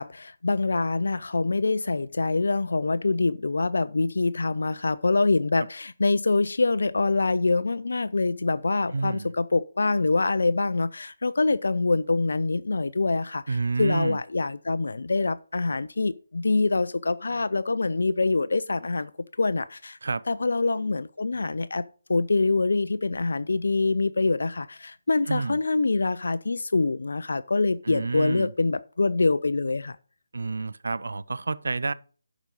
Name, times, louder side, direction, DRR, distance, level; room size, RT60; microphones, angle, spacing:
voice 1, 0.0-13.4 13.8-19.1 19.4-20.0 20.3-21.8 22.1-30.0, left 3 dB, 60° left, 0.4 m, -25 dB
voice 2, 8.9-9.3 13.5-14.2 20.0-20.2 25.3-25.6 27.8-28.5 30.3-31.9, right 3 dB, 65° right, 0.6 m, -29 dB
11.5 x 5.0 x 5.4 m
figure-of-eight pair, 150°, 0 cm